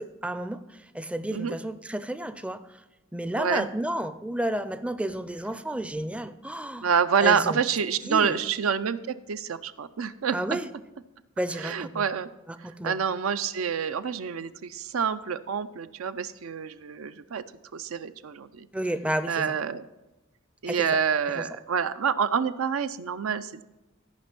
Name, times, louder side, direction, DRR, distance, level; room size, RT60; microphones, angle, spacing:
voice 1, 0.0-2.8 3.1-6.9 7.2-7.6 8.1-8.4 10.3-10.7 11.4-12.1 12.5-13.0 18.7-19.6 20.7-20.9 21.4-21.5, right 1 dB, 5° right, 12 dB, 0.4 m, -31 dB
voice 2, 6.8-10.6 11.6-12.3 12.8-17.4 17.7-18.7 19.3-19.9 20.6-23.6, right 6 dB, 90° right, 12 dB, 0.5 m, -27 dB
13.5 x 5.3 x 5.9 m, 1.0 s
head